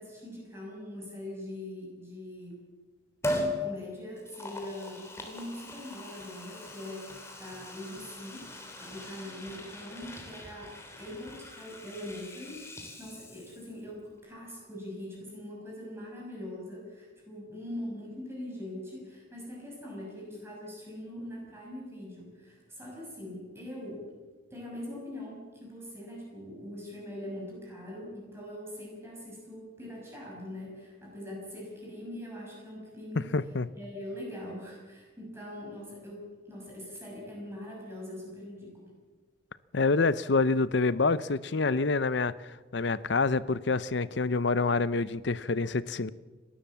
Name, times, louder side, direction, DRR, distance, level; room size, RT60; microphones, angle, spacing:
voice 1, 0.0-2.6 3.5-24.1 24.5-33.3 33.7-38.9, left 1 dB, 15° right, 6.2 m, -42 dB
Liquid, 3.2-3.6 4.2-13.8 14.1-14.2, left 1 dB, 15° left, 3.0 m, -40 dB
voice 2, 33.2-33.7 39.7-46.1, left 3 dB, 60° left, 0.7 m, -27 dB
29.0 x 12.5 x 7.3 m
head